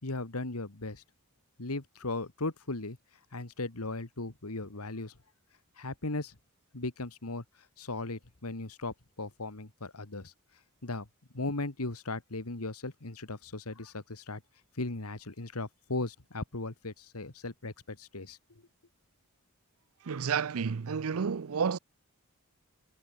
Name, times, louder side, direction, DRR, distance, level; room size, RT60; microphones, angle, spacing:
voice 1, 0.0-1.0 1.6-3.0 3.3-5.2 5.8-6.4 6.7-7.4 7.8-10.3 10.8-11.1 11.3-14.4 14.8-18.4, left 2 dB, 80° left, 2.0 m, -37 dB
voice 2, 20.0-21.8, right 6 dB, 70° right, 0.5 m, -30 dB
head